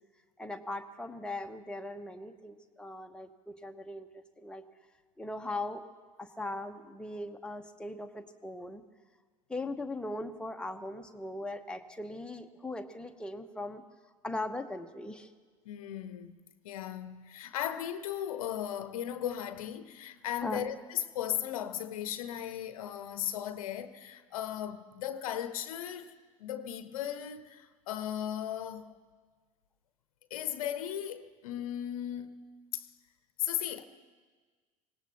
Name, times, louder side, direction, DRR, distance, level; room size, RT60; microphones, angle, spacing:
voice 1, 0.4-4.6 5.2-5.8 6.2-8.8 9.5-13.8 14.2-15.3 20.4-20.7 28.8-29.0, left 2 dB, 5° left, 1.1 m, -39 dB
voice 2, 15.6-16.4 16.6-26.1 26.4-29.0 30.3-32.3 32.7-32.9 33.4-33.8, left 10 dB, 65° left, 0.9 m, -36 dB
25.0 x 18.0 x 3.0 m
figure-of-eight pair, 70°, 19 cm